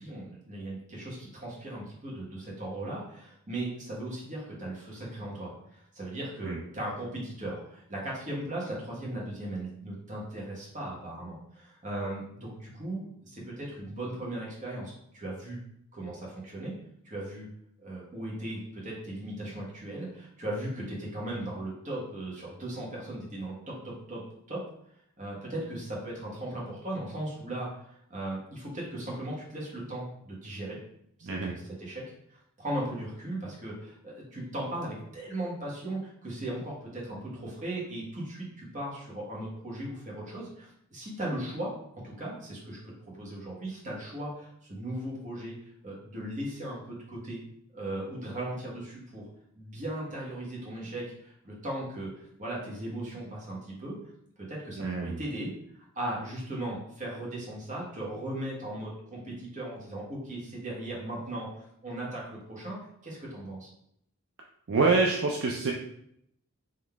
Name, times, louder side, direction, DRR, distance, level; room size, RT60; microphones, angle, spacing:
voice 1, 0.0-15.6 15.9-16.7 17.0-17.5 17.8-24.2 24.5-24.6 25.2-30.8 31.2-32.0 32.3-45.6 45.8-47.4 47.7-49.3 49.5-54.0 54.4-63.7, right 1 dB, 35° right, -4 dB, 1.5 m, -37 dB
voice 2, 31.2-31.5 54.8-55.2 64.7-65.7, right 3 dB, 60° right, 0 dB, 0.5 m, -26 dB
3.8 x 3.1 x 3.5 m, 0.73 s
head